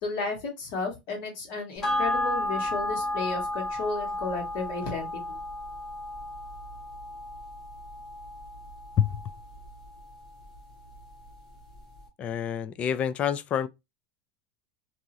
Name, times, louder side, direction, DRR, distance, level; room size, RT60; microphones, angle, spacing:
voice 1, 0.0-5.4, left 4 dB, 55° left, 2.0 m, -33 dB
sound 1, 1.8-10.6 10.9-11.0, left 1 dB, 10° left, 1.5 m, -33 dB
voice 2, 12.2-13.7, left 9 dB, 25° left, 0.3 m, -27 dB
3.6 x 2.7 x 2.9 m
supercardioid pair, 155°, 5 cm